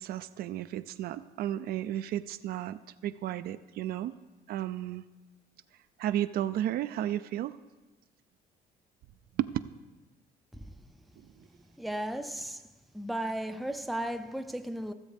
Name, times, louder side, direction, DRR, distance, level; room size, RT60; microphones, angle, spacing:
voice 1, 0.0-4.1 4.5-5.0 6.0-7.6 9.4-9.5, right 12 dB, 65° right, 0.4 m, -33 dB
voice 2, 10.5-10.9 11.4-12.6 12.9-14.9, right 1 dB, ahead, 0.5 m, -36 dB
15.5 x 7.2 x 3.5 m
cardioid pair, 110°, 17 cm